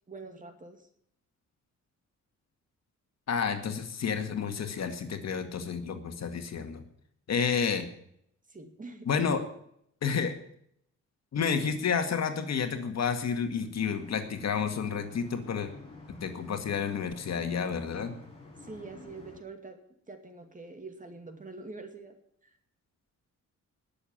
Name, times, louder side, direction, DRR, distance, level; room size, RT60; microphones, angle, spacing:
voice 1, 0.1-0.9 8.5-9.1 18.6-19.8 20.1-22.1 22.4-22.6, right 3 dB, 25° right, 6 dB, 2.4 m, -45 dB
voice 2, 3.3-6.8 7.3-7.9 9.1-9.4 10.0-10.4 11.3-15.7 16.2-18.2, left 6 dB, 60° left, 6 dB, 2.0 m, -30 dB
sound 1, 13.9-19.4, left 2 dB, 20° left, 5.6 m, -50 dB
19.5 x 7.1 x 7.4 m, 0.71 s
cardioid pair, 115°, 29 cm